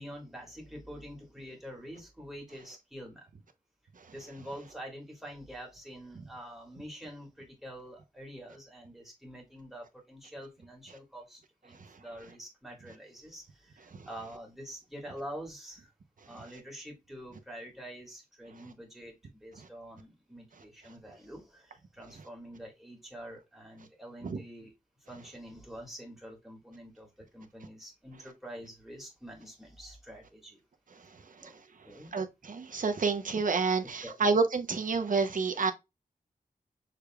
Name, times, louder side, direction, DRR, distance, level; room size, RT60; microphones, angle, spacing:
voice 1, 0.0-3.3 4.1-15.9 16.2-24.7 25.1-30.6 31.4-31.6 31.8-32.2 33.3-33.4 34.0-34.4, equal, ahead, 2.0 m, -46 dB
voice 2, 32.1-35.7, right 4 dB, 60° right, 0.9 m, -29 dB
6.6 x 3.4 x 2.3 m
wide cardioid pair, 115°, 15 cm